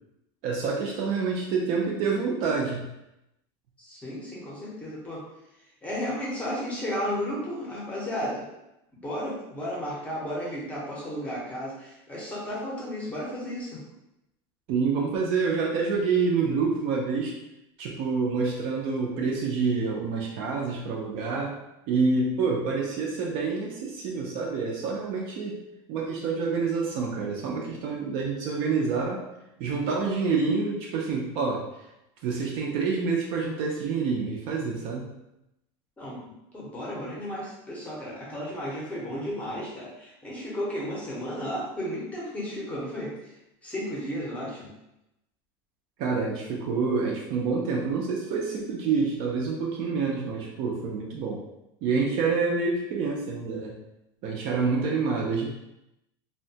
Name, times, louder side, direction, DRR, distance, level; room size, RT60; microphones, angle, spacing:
voice 1, 0.4-2.9 14.7-17.3 17.8-21.6 21.9-25.6 25.9-29.2 29.6-31.6 32.2-35.1 46.0-51.4 51.8-53.7 54.2-55.4, right 4 dB, 45° right, -1 dB, 0.4 m, -27 dB
voice 2, 3.8-5.2 5.8-8.4 8.9-13.8 36.0-43.4 43.6-44.7, equal, 10° left, -6 dB, 0.6 m, -33 dB
2.8 x 2.2 x 2.7 m, 0.88 s
supercardioid pair, 170°, 13 cm